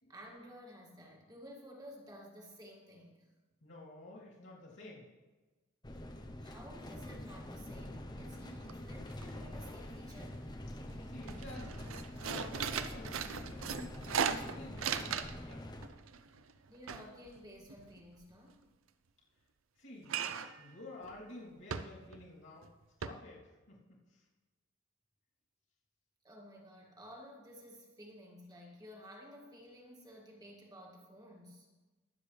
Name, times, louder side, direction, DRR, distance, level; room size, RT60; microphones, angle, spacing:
voice 1, 0.1-3.3 6.4-10.4 16.7-18.6 26.2-31.7, equal, 20° right, -1 dB, 2.1 m, -53 dB
voice 2, 3.6-5.1 11.0-11.7 12.2-15.7 16.2-16.4 19.8-22.7 23.0-24.2, left 2 dB, 60° left, -4 dB, 3.0 m, -51 dB
sound 1, 5.8-15.9, left 1 dB, 20° left, 0.7 m, -45 dB
sound 2, 8.3-8.4 8.7-9.2 9.5-10.3 10.7-10.9 11.2-15.5 15.8-18.2 20.1-20.6 21.0-21.2 21.7-22.3 22.6-22.7 23.0-23.1, right 7 dB, 80° right, 0.6 m, -38 dB
22.0 x 7.5 x 3.3 m, 1.2 s
head